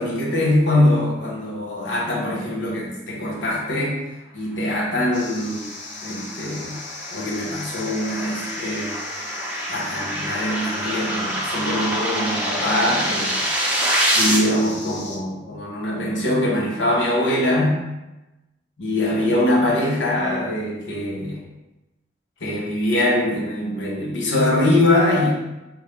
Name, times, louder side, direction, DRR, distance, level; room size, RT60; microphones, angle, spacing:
voice 1, 0.0-4.0 4.3-5.6 6.0-6.8 7.1-9.0 9.7-13.3 14.1-17.8 18.8-21.4 22.4-25.3, left 1 dB, 85° left, -3 dB, 1.0 m, -22 dB
sound 1, 5.1-15.2, left 3 dB, 70° left, 0.6 m, -38 dB
sound 2, 5.5-14.4, right 1 dB, 10° right, 0.6 m, -26 dB
3.5 x 3.3 x 3.1 m, 1.0 s
head